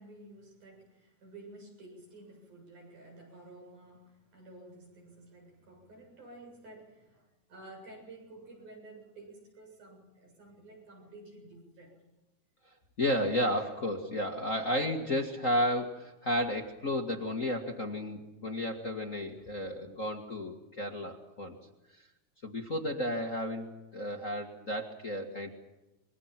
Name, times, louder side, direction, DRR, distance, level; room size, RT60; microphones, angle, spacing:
voice 1, 0.0-12.0, right 2 dB, 75° right, 1 dB, 9.1 m, -52 dB
voice 2, 13.0-21.6 22.4-25.5, left 1 dB, 30° left, 2 dB, 1.7 m, -32 dB
27.0 x 23.0 x 6.0 m, 1.0 s
omnidirectional pair, 3.5 m